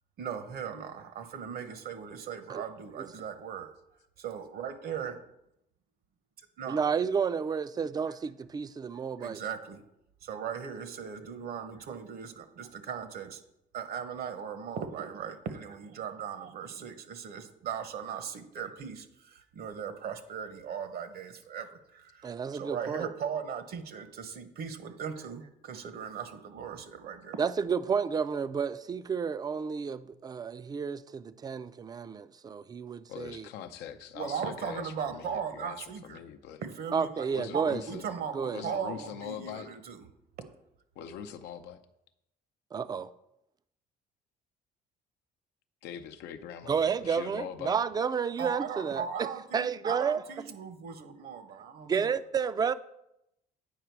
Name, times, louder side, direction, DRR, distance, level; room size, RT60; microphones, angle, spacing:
voice 1, 0.2-3.7 4.2-5.2 6.6-6.8 9.2-9.8 10.2-13.4 13.7-27.4 34.1-36.2 36.6-37.3 37.5-40.0 48.4-52.1, right 7 dB, 65° right, 1.0 m, -38 dB
voice 2, 6.7-9.4 22.2-23.1 27.4-33.5 36.9-37.8 38.3-38.6 42.7-43.1 46.7-49.3 49.5-50.2 51.9-52.7, right 6 dB, 25° right, 0.4 m, -31 dB
voice 3, 33.1-36.6 37.3-38.1 38.5-39.7 41.0-41.8 45.8-47.8, left 9 dB, 85° left, 0.6 m, -42 dB
8.8 x 5.0 x 4.6 m
cardioid pair, 110°, 17 cm